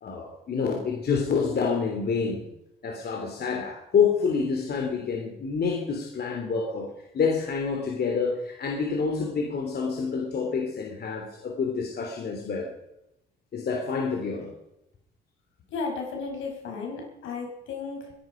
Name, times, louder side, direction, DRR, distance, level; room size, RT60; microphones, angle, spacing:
voice 1, 0.0-2.5 2.8-6.9 7.1-12.7 13.5-14.5, left 5 dB, 55° left, 1 dB, 3.2 m, -27 dB
voice 2, 15.7-18.1, left 4 dB, 80° left, 1 dB, 5.5 m, -34 dB
22.0 x 11.5 x 5.2 m, 0.86 s
cardioid pair, 90°, 20 cm